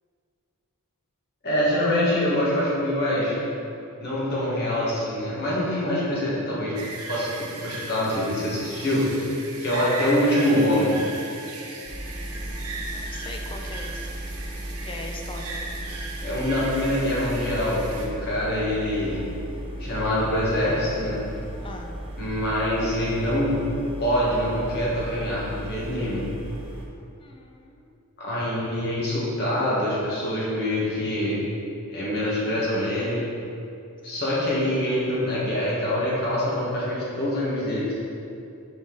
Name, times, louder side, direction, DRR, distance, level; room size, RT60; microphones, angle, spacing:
voice 1, 1.4-3.3 4.0-6.7 7.1-9.1 9.6-11.0 16.2-19.2 19.8-21.2 22.2-23.5 24.0-26.2 28.2-31.4 31.9-33.2 34.0-38.0, left 1 dB, 45° left, -7 dB, 1.5 m, -25 dB
sound 1, 6.8-18.1, right 3 dB, 85° right, 0.8 m, -37 dB
sound 2, 11.8-26.9, right 1 dB, 25° right, 0.6 m, -36 dB
voice 2, 12.3-15.6 21.6-22.0 27.2-28.0 34.1-34.2, left 2 dB, 25° left, 2 dB, 0.5 m, -41 dB
5.3 x 5.2 x 3.9 m, 2.7 s
head